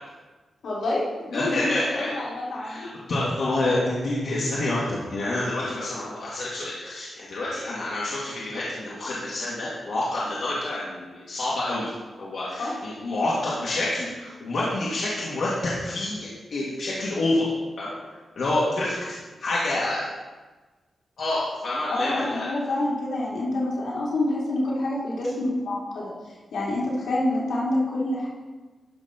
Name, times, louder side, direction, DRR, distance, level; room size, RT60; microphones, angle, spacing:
voice 1, 0.6-2.9 12.6-12.7 21.9-26.1 26.5-28.3, left 1 dB, 90° left, -5 dB, 2.8 m, -27 dB
voice 2, 1.3-2.1 2.6-17.5 17.8-18.0 18.3-19.0 19.4-20.1 21.2-22.5, left 2 dB, 65° left, -7 dB, 1.9 m, -28 dB
12.5 x 4.2 x 5.7 m, 1.3 s
wide cardioid pair, 145°, 0 cm